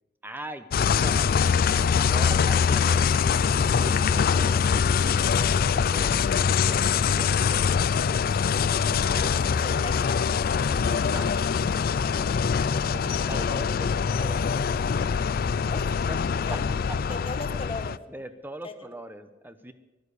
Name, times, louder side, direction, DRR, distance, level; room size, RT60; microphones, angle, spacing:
voice 1, 0.2-1.4 1.8-3.1 3.8-4.8 5.0-6.2 6.6-7.6 9.1-9.7 10.9-11.4 12.6-14.8 16.1-17.0 18.1-19.7, right 1 dB, 10° right, 10 dB, 0.8 m, -41 dB
sound 1, 0.7-18.0, left 6 dB, 55° left, 0.4 m, -23 dB
voice 2, 9.6-10.2 12.2-12.3 15.7-16.0 16.5-16.6 17.1-18.0 18.6-18.7, left 3 dB, 30° left, 8 dB, 1.1 m, -38 dB
12.0 x 11.5 x 8.2 m, 1.1 s
head